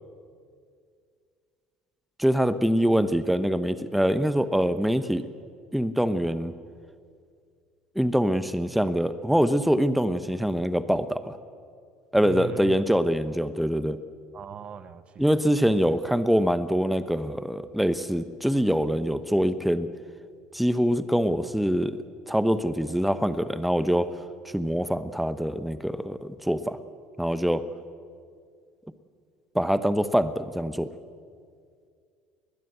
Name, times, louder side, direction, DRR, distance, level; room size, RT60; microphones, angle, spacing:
voice 1, 2.2-5.2 5.7-6.5 8.0-11.4 12.1-14.0 15.2-19.9 20.5-24.1 24.5-26.8 27.2-27.6 29.5-30.9, equal, ahead, 1.1 m, -24 dB
voice 2, 12.2-12.8 14.3-15.3, right 8 dB, 40° right, 1.2 m, -39 dB
20.5 x 20.0 x 8.1 m
hypercardioid pair, 65°, 3 cm